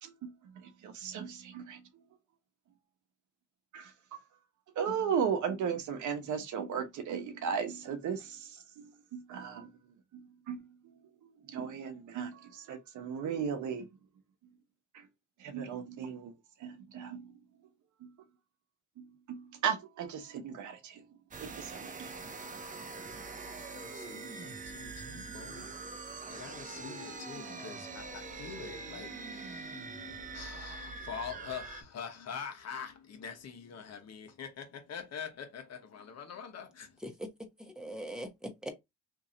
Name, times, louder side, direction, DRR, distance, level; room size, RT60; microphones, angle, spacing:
voice 1, 0.0-1.8 3.7-4.2 4.7-9.7 10.1-10.7 11.2-13.9 14.9-15.1 15.4-16.3 16.6-17.3 18.0-18.1 19.0-21.0 21.4-22.1, right 7 dB, 75° right, 1.0 m, -36 dB
sound 1, 21.3-31.8, right 4 dB, 25° right, 0.6 m, -44 dB
voice 2, 23.5-37.0, left 7 dB, 55° left, 1.1 m, -45 dB
voice 3, 37.6-38.7, equal, ahead, 1.0 m, -41 dB
3.0 x 2.6 x 3.8 m
cardioid pair, 90°, 30 cm